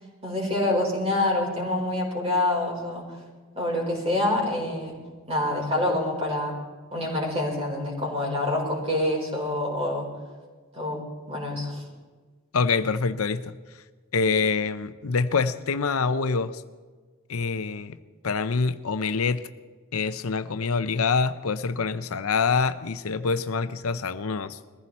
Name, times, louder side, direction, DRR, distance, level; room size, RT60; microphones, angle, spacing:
voice 1, 0.2-3.0 3.5-4.9 5.3-6.5 6.9-10.1 10.7-11.0 11.3-11.8, left 1 dB, 30° right, -1 dB, 4.8 m, -26 dB
voice 2, 12.5-13.6 14.1-16.6 17.3-18.0 18.2-19.4 19.9-24.6, left 4 dB, 75° left, 12 dB, 0.7 m, -25 dB
22.0 x 15.0 x 4.2 m, 1.4 s
head